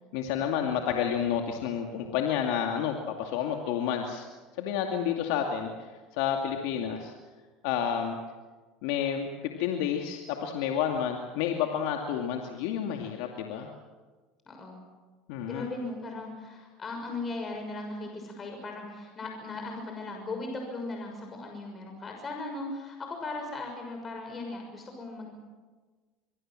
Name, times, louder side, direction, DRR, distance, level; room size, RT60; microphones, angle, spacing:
voice 1, 0.1-4.3 4.6-7.1 7.6-8.2 8.8-9.3 9.6-13.7 15.3-15.6, left 8 dB, 75° left, 3 dB, 2.4 m, -30 dB
voice 2, 14.5-14.8 15.5-25.3, left 2 dB, 30° left, 2 dB, 6.3 m, -38 dB
24.5 x 23.0 x 7.7 m, 1.4 s
supercardioid pair, 105°, 0 cm